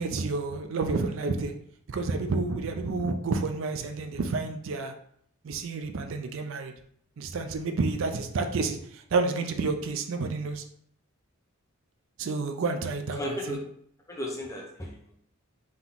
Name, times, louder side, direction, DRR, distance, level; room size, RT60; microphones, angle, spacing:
voice 1, 0.0-1.5 1.9-4.9 5.4-6.7 7.2-10.6 12.2-13.6, right 3 dB, 65° right, 6 dB, 0.4 m, -30 dB
voice 2, 13.2-13.6 14.1-15.1, left 1 dB, 15° left, -1 dB, 0.7 m, -35 dB
3.8 x 2.9 x 3.8 m, 0.67 s
head